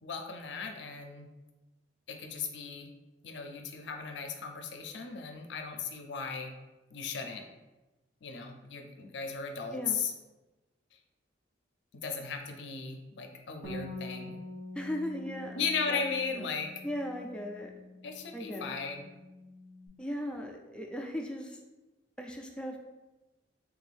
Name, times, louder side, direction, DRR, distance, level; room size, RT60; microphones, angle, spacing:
voice 1, 0.0-1.3 2.1-2.9 3.2-6.5 6.9-7.5 8.2-10.1 12.0-14.4 15.5-16.7 18.0-19.1, left 5 dB, 70° left, 4 dB, 0.5 m, -36 dB
Bass guitar, 13.6-19.9, left 2 dB, 75° right, 0.8 m, -46 dB
voice 2, 14.7-16.0 16.3-16.5 16.8-17.7 18.3-18.7 20.0-21.6 22.2-22.8, equal, 5° left, 1 dB, 0.3 m, -38 dB
3.4 x 2.6 x 3.4 m, 1.1 s
head